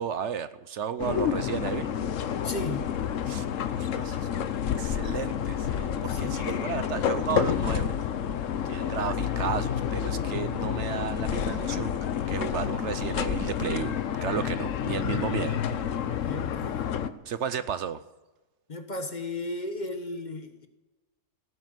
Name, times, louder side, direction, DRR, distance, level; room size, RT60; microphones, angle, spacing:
voice 1, 0.0-1.9 3.3-3.5 3.7-4.5 4.8-8.0 8.6-15.6 17.3-18.0, right 8 dB, 65° right, 13 dB, 0.9 m, -33 dB
sound 1, 1.0-17.1, left 8 dB, 75° left, 1.2 m, -29 dB
voice 2, 2.4-2.9 6.1-6.4 16.2-16.8 18.7-20.7, left 2 dB, 35° left, 7 dB, 1.4 m, -35 dB
17.0 x 9.5 x 7.7 m, 1.1 s
omnidirectional pair, 1.3 m